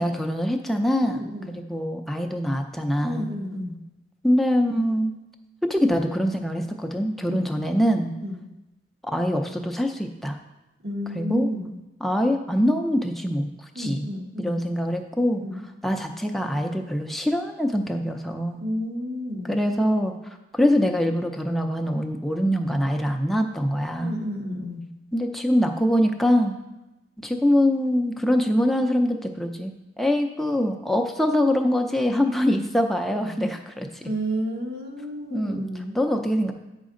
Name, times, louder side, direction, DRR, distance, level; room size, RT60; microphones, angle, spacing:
voice 1, 0.0-3.4 4.2-5.1 5.6-8.1 9.0-10.4 11.2-11.5 12.0-13.5 13.8-15.4 15.8-18.6 19.5-20.1 20.5-24.1 25.1-26.6 27.2-29.7 30.0-33.9 35.3-35.7 35.9-36.5, equal, ahead, 3 dB, 0.5 m, -24 dB
voice 2, 1.1-1.6 3.0-3.8 7.3-7.5 8.2-8.4 10.8-11.7 13.7-14.6 15.4-15.6 18.6-19.6 24.0-24.8 34.0-36.0, equal, 70° right, -2 dB, 1.1 m, -31 dB
9.4 x 5.2 x 3.8 m, 0.98 s
head